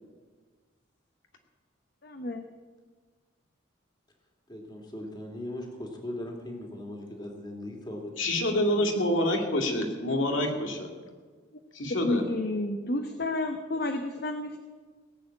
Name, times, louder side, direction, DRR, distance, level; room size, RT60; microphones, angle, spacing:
voice 1, 2.0-2.5 11.9-14.6, left 2 dB, 50° left, 6 dB, 0.9 m, -31 dB
voice 2, 4.5-8.3, left 1 dB, 20° left, 1 dB, 2.5 m, -39 dB
voice 3, 8.2-10.9 11.7-12.2, left 1 dB, 75° left, 2 dB, 2.3 m, -27 dB
18.0 x 7.7 x 8.9 m, 1.5 s
head